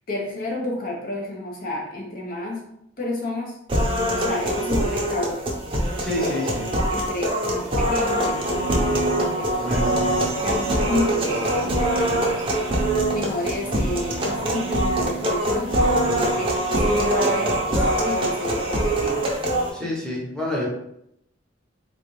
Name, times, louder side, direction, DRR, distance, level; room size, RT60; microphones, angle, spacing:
voice 1, 0.0-2.7 3.0-3.6 4.1-5.7 6.2-6.5 6.9-9.9 10.4-12.3 12.6-12.7 13.1-19.3, left 1 dB, 50° left, -2 dB, 0.8 m, -30 dB
sound 1, 3.7-19.7, right 1 dB, 30° right, 0.6 m, -23 dB
voice 2, 6.0-6.7 9.6-10.1 19.7-20.7, left 1 dB, 5° left, -5 dB, 0.9 m, -28 dB
sound 2, 8.1-17.2, right 6 dB, 90° right, 0.6 m, -34 dB
3.9 x 2.3 x 3.1 m, 0.77 s
head